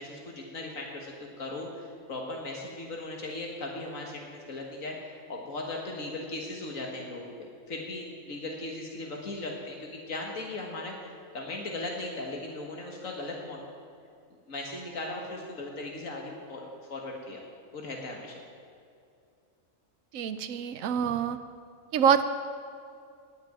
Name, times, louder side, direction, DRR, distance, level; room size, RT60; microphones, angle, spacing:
voice 1, 0.0-5.0 5.3-13.6 14.5-17.4 17.7-18.4, left 2 dB, 80° left, 0 dB, 2.0 m, -38 dB
voice 2, 20.1-21.4 21.9-22.2, right 8 dB, 85° right, 10 dB, 1.1 m, -25 dB
19.5 x 6.9 x 9.1 m, 2.3 s
omnidirectional pair, 1.4 m